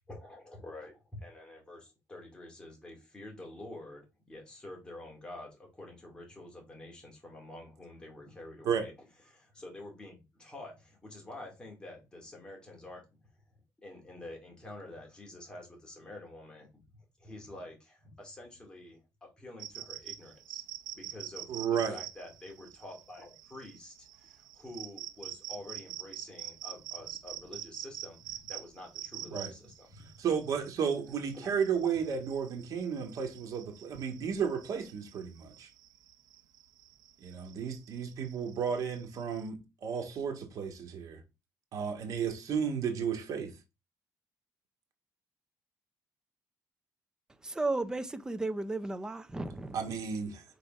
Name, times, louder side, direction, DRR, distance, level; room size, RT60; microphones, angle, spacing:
voice 1, 0.1-8.9 9.3-13.0 13.8-16.7 17.2-19.0 19.4-20.6 20.9-21.6 21.9-30.1 31.3-31.6, left 1 dB, 15° left, 2.3 m, -48 dB
sound 1, 19.6-39.5, right 13 dB, 90° right, 0.6 m, -46 dB
voice 2, 21.5-22.0 29.3-29.5 30.2-35.7 37.2-41.2 41.7-43.5 49.7-50.4, right 7 dB, 55° right, 1.7 m, -33 dB
voice 3, 47.4-49.9, right 2 dB, 10° right, 0.5 m, -34 dB
5.0 x 4.1 x 5.2 m
cardioid pair, 160°, 7 cm